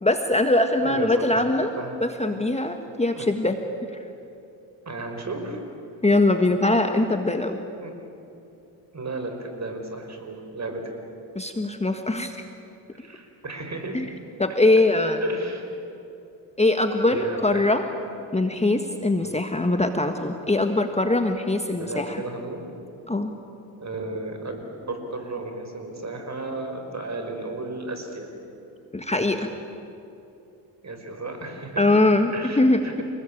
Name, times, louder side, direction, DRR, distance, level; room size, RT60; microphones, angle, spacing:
voice 1, 0.0-1.7 2.0-3.6 6.0-7.6 11.3-12.3 13.9-14.1 14.4-15.2 16.6-17.8 18.3-22.2 23.1-23.3 28.9-29.5 31.8-33.0, left 2 dB, 15° left, 6 dB, 1.6 m, -22 dB
voice 2, 0.8-1.3 1.8-2.0 3.2-3.4 4.9-5.6 7.8-7.9 8.9-10.9 12.9-14.0 15.2-15.7 17.1-17.7 19.2-19.4 21.7-22.6 23.8-28.3 30.8-31.8 32.3-33.0, right 2 dB, 35° right, 5 dB, 5.5 m, -33 dB
28.5 x 19.5 x 8.8 m, 2.8 s
supercardioid pair, 75°, 46 cm